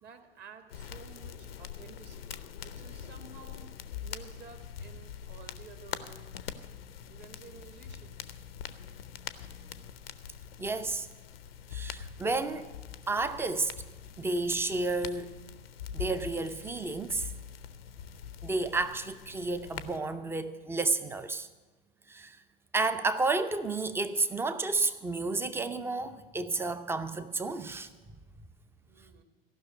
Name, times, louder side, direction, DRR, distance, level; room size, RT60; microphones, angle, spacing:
voice 1, 0.0-3.7 4.0-6.3 7.1-8.3 28.8-29.2, right 5 dB, 35° right, 1.5 m, -52 dB
sound 1, 0.7-20.0, left 8 dB, 75° left, 0.7 m, -44 dB
voice 2, 10.6-11.1 11.7-12.7 13.1-13.7 14.2-15.3 15.9-17.3 18.4-21.5 22.1-22.4 22.7-27.9 28.4-28.5, right 3 dB, 10° right, 0.5 m, -31 dB
15.0 x 5.9 x 8.9 m
figure-of-eight pair, 85°, 30 cm